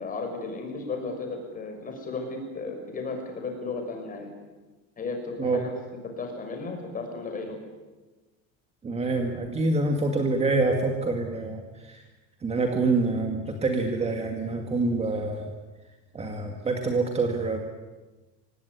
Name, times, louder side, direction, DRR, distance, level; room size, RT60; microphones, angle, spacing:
voice 1, 0.0-4.3 5.0-5.7 6.2-7.6, left 3 dB, 25° left, 3 dB, 6.0 m, -34 dB
voice 2, 8.8-12.0 12.4-15.5 16.1-17.6, right 3 dB, 20° right, 3 dB, 2.2 m, -26 dB
25.5 x 18.5 x 9.8 m, 1.2 s
cardioid pair, 170°, 34 cm